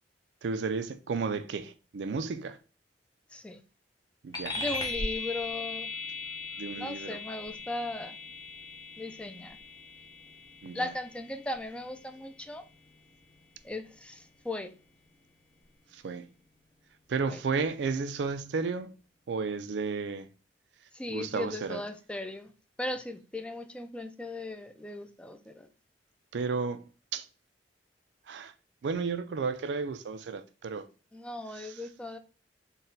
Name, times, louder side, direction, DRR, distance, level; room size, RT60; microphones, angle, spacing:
voice 1, 0.4-2.6 4.2-4.6 6.6-7.2 10.6-10.9 15.9-16.3 17.1-18.9 19.3-20.3 21.1-21.8 26.3-26.9 27.1-27.3 28.3-28.5 28.8-30.9 31.5-31.8, right 4 dB, 80° right, 0.4 m, -33 dB
voice 2, 3.3-3.6 4.5-5.9 6.7-8.2 9.0-9.6 10.7-12.6 13.6-14.7 17.3-17.4 20.9-22.5 22.8-25.7 31.1-32.2, left 2 dB, 5° left, 0.3 m, -37 dB
sound 1, 4.3-14.2, left 3 dB, 25° left, 0.8 m, -39 dB
4.0 x 2.2 x 3.9 m
head